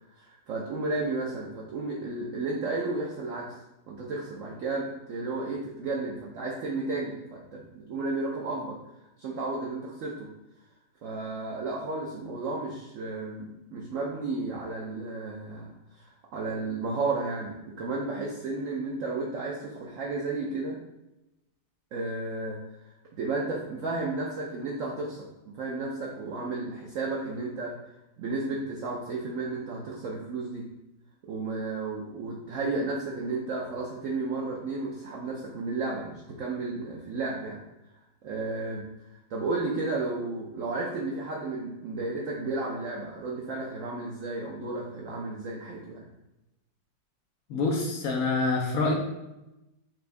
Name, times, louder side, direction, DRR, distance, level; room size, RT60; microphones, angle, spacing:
voice 1, 0.1-3.6 3.9-8.8 9.2-10.3 11.0-20.8 21.9-22.9 23.2-25.2 25.5-27.7 28.2-30.7 31.3-37.6 38.2-46.0, right 3 dB, 70° right, -3 dB, 0.7 m, -33 dB
voice 2, 47.5-48.9, left 3 dB, 65° left, 1 dB, 0.9 m, -26 dB
5.8 x 3.3 x 2.6 m, 0.94 s
omnidirectional pair, 2.1 m